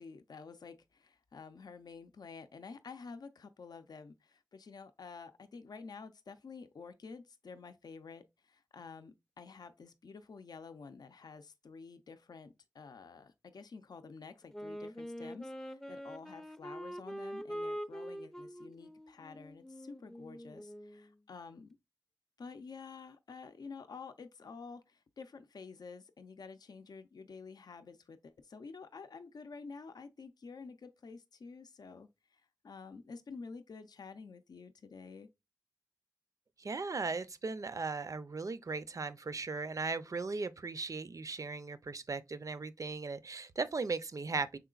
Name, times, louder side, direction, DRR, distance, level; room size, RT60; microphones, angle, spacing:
voice 1, 0.0-21.8 22.4-35.3, left 4 dB, 80° left, 0.5 m, -50 dB
Wind instrument woodwind instrument, 14.5-21.1, equal, 5° left, 0.4 m, -44 dB
voice 2, 36.6-44.6, right 4 dB, 55° right, 0.5 m, -37 dB
5.7 x 3.7 x 2.3 m
wide cardioid pair, 55°, 7 cm